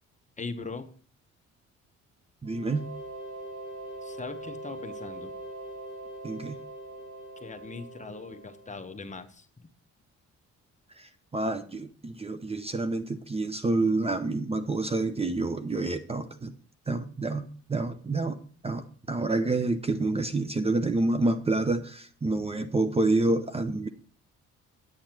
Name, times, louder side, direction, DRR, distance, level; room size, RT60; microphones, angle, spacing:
voice 1, 0.4-0.9 4.0-5.3 7.4-9.7, left 4 dB, 25° left, 8 dB, 1.0 m, -40 dB
voice 2, 2.4-2.9 6.2-6.6 11.0-16.5 16.9-23.9, right 2 dB, 20° right, 10 dB, 0.7 m, -28 dB
sound 1, 2.4-9.1, right 1 dB, 80° right, 3.7 m, -42 dB
8.7 x 8.7 x 4.5 m, 0.44 s
cardioid pair, 90°, 30 cm